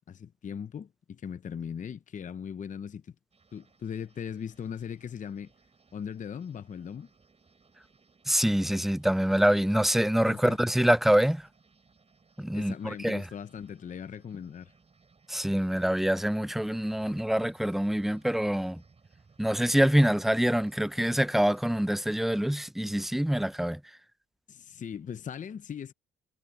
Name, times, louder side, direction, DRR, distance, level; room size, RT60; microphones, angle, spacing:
voice 1, 0.1-3.1 3.5-5.5 5.9-7.1 10.2-10.6 12.5-14.7 24.5-25.9, left 7 dB, 40° left, 0.7 m, -39 dB
sound 1, 3.3-22.4, right 4 dB, 30° right, 5.5 m, -62 dB
voice 2, 8.3-11.4 12.4-13.2 15.3-18.8 19.4-23.8, equal, ahead, 0.4 m, -25 dB
cardioid pair, 90°, 20 cm